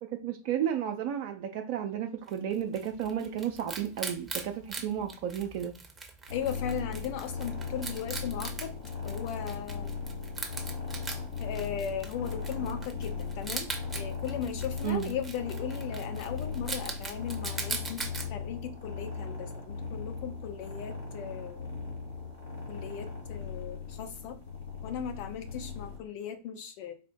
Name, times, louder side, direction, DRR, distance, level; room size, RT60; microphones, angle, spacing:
voice 1, 0.2-5.7 14.8-15.1, right 9 dB, 45° right, 0.4 m, -32 dB
Wild animals, 2.3-18.3, right 3 dB, 10° right, 0.8 m, -41 dB
sound 1, 6.3-26.0, left 5 dB, 65° left, 1.6 m, -38 dB
voice 2, 6.3-8.7 9.0-9.9 11.4-13.7 13.9-21.7 22.7-24.4 24.8-26.9, left 8 dB, 45° left, 0.7 m, -37 dB
4.1 x 2.0 x 4.4 m
figure-of-eight pair, 90°, 0 cm